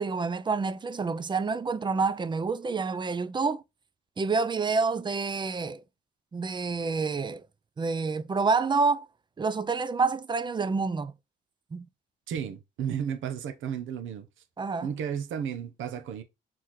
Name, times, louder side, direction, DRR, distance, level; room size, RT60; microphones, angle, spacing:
voice 1, 0.0-3.6 4.2-5.8 6.3-7.5 7.8-9.1 9.4-11.1 11.7-11.8 14.6-14.9, right 4 dB, 25° right, 0.4 m, -28 dB
voice 2, 12.3-14.3 14.8-16.2, right 8 dB, 75° right, 0.9 m, -33 dB
4.4 x 3.8 x 3.1 m
cardioid pair, 90°, 20 cm